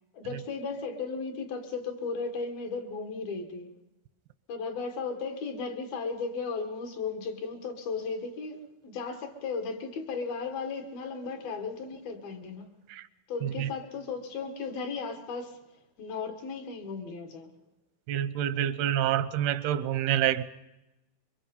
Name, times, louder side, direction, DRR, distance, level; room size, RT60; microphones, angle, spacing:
voice 1, 0.1-3.7 4.5-12.7 13.3-15.6 16.0-17.5, left 4 dB, 75° left, 3.6 m, -35 dB
voice 2, 18.1-20.4, right 11 dB, 90° right, 2.9 m, -27 dB
26.0 x 23.5 x 5.5 m
omnidirectional pair, 4.4 m